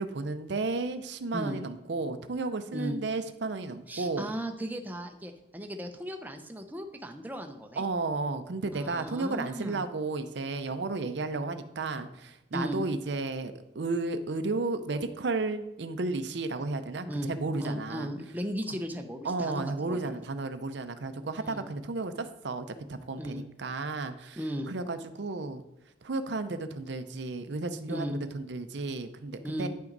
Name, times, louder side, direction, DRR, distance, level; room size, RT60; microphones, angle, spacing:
voice 1, 0.0-4.3 7.8-18.1 19.2-24.4 24.7-25.6 26.0-29.7, right 3 dB, 60° right, 10 dB, 0.6 m, -33 dB
voice 2, 3.9-7.8 8.7-9.8 12.5-12.8 17.0-17.3 17.6-20.2 21.4-21.6 23.2-23.4 24.4-24.7 27.9-28.2 29.4-29.7, equal, 10° right, 4 dB, 0.6 m, -36 dB
9.5 x 5.9 x 3.9 m, 0.94 s
head